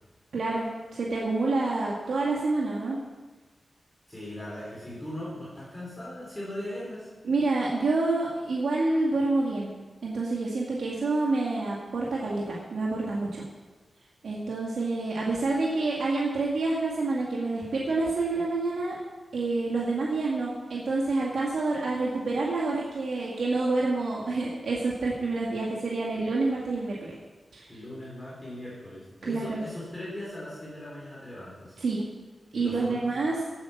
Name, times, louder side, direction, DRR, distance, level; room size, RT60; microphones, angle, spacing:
voice 1, 0.3-0.7 0.9-3.0 7.3-9.7 10.0-13.4 14.2-19.0 19.3-27.1 27.5-27.7 29.2-29.6 31.8-32.0 32.5-33.4, right 3 dB, 85° right, -4 dB, 2.1 m, -28 dB
voice 2, 4.1-7.1 27.7-31.8 32.5-33.1, left 1 dB, 15° left, -7 dB, 4.2 m, -39 dB
15.5 x 8.8 x 6.0 m, 1.3 s
wide cardioid pair, 175°, 0 cm